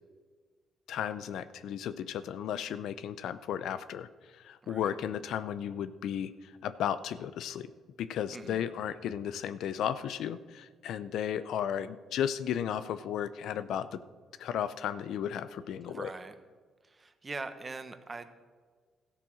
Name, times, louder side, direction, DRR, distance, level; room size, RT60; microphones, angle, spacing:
voice 1, 0.9-4.1 4.3-7.7 8.0-14.0 14.4-16.1, left 9 dB, 80° left, 14 dB, 0.6 m, -34 dB
voice 2, 4.6-4.9 8.3-8.6 15.9-16.3 16.8-18.3, right 3 dB, 30° right, 9 dB, 1.1 m, -42 dB
14.0 x 8.5 x 6.3 m, 1.5 s
cardioid pair, 90°, 0 cm